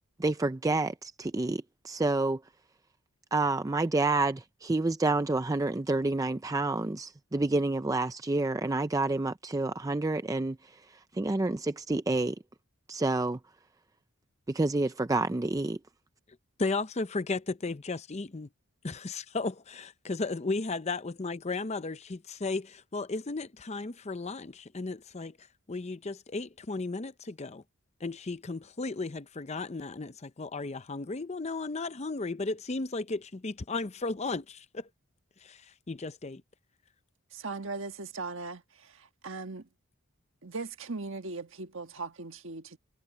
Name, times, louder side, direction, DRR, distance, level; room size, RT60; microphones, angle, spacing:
voice 1, 0.2-2.4 3.3-12.4 12.9-13.4 14.5-15.8, right 2 dB, 15° right, 0.4 m, -29 dB
voice 2, 16.6-18.5 18.8-25.4 25.7-27.6 28.0-34.9 35.4-36.4, left 3 dB, 30° left, 0.6 m, -35 dB
voice 3, 37.3-39.7 40.4-42.8, right 3 dB, 60° right, 1.6 m, -39 dB
head